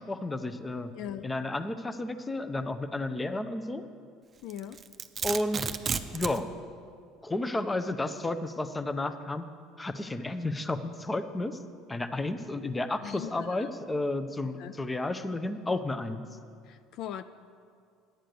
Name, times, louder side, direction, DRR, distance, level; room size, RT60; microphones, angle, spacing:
voice 1, 0.0-0.9 1.2-3.8 5.2-5.7 6.1-6.5 7.2-9.4 9.8-11.6 11.9-16.2, left 2 dB, 15° left, 11 dB, 0.6 m, -32 dB
voice 2, 0.9-1.3 4.4-4.8 13.0-13.7 14.6-14.7 16.6-17.2, left 10 dB, 60° left, 12 dB, 0.3 m, -39 dB
Domestic sounds home sounds, 4.5-6.4, right 6 dB, 30° right, 0.5 m, -32 dB
10.5 x 7.6 x 6.7 m, 2.3 s
supercardioid pair, 100°, 0 cm